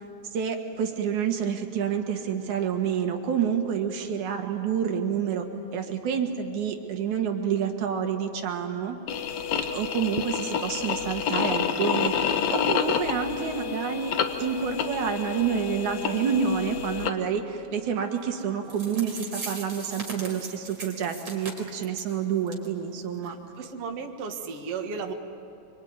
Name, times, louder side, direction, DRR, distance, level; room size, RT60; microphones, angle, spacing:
voice 1, 0.3-5.5 5.7-9.0 9.7-14.1 14.4-23.4, right 7 dB, 85° right, 4 dB, 3.1 m, -28 dB
sound 1, 9.1-17.1, left 7 dB, 65° left, 2.3 m, -29 dB
sound 2, 18.4-18.5 18.7-22.1 22.5-22.7 23.0-23.1 23.5-23.6, right 2 dB, 25° right, 4.6 m, -39 dB
voice 2, 23.2-25.1, right 5 dB, 55° right, 2 dB, 2.6 m, -35 dB
25.0 x 25.0 x 9.5 m, 2.9 s
omnidirectional pair, 3.3 m